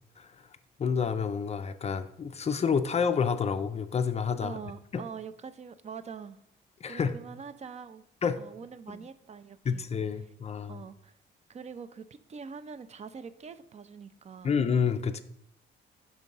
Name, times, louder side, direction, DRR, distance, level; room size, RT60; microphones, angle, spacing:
voice 1, 0.8-4.6 4.9-5.0 6.8-7.2 8.2-8.4 9.7-10.8 14.4-15.2, left 6 dB, 35° left, 10 dB, 0.4 m, -29 dB
voice 2, 4.4-6.4 6.9-8.0 8.4-9.8 10.7-11.2 11.5-14.6, right 6 dB, 35° right, 13 dB, 0.4 m, -44 dB
6.0 x 3.6 x 5.3 m, 0.76 s
cardioid pair, 90°, 20 cm